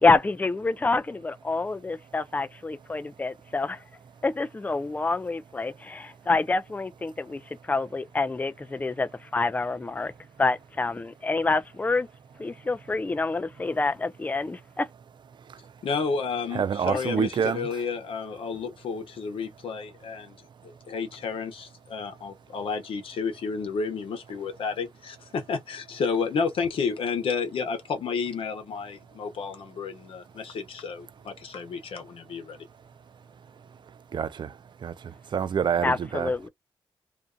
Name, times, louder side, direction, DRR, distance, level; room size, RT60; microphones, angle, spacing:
voice 1, 0.0-3.8 4.2-7.4 7.7-10.1 10.4-12.1 12.4-14.9 35.8-36.5, left 3 dB, 20° left, 0.4 m, -27 dB
voice 2, 15.8-20.4 20.6-32.6, left 5 dB, 80° left, 0.9 m, -31 dB
voice 3, 16.5-17.7 34.1-34.5 34.8-36.3, right 7 dB, 60° right, 0.4 m, -27 dB
2.6 x 2.4 x 2.3 m
cardioid pair, 60°, 9 cm